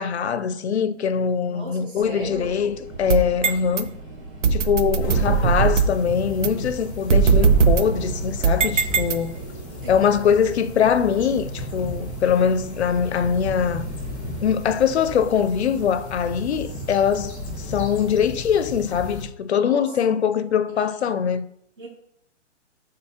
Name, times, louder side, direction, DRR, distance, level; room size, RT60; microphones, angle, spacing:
voice 1, 0.0-3.9 4.5-9.3 9.9-13.9 14.4-17.3 17.7-21.4, left 7 dB, 60° left, 0.5 m, -22 dB
voice 2, 1.4-2.5 4.7-5.6 9.3-9.9 17.6-17.8 19.6-19.9 20.8-20.9 21.8-21.9, right 2 dB, 40° right, 2.4 m, -38 dB
sound 1, 1.9-17.8, equal, 15° right, 1.7 m, -43 dB
sound 2, 2.9-3.8 4.4-6.0 6.4-6.5 7.1-9.6, right 5 dB, 70° right, 0.7 m, -20 dB
sound 3, 5.0-19.2, left 1 dB, 10° left, 0.5 m, -34 dB
8.7 x 3.9 x 2.9 m
hypercardioid pair, 180°, 37 cm